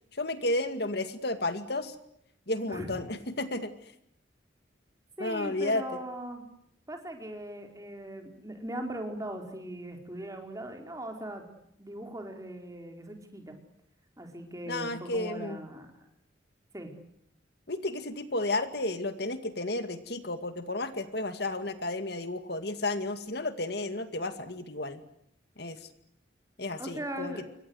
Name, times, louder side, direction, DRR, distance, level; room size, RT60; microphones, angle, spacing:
voice 1, 0.1-2.0 2.5-3.9 5.2-5.8 14.7-15.6 17.7-25.0 25.6-25.9 26.6-27.3, left 2 dB, 60° left, 9 dB, 2.2 m, -32 dB
voice 2, 5.2-6.4 6.9-11.5 11.8-13.6 14.2-15.9 16.7-16.9 26.8-27.4, right 1 dB, 20° right, 4 dB, 4.7 m, -39 dB
28.5 x 24.0 x 8.1 m, 0.74 s
head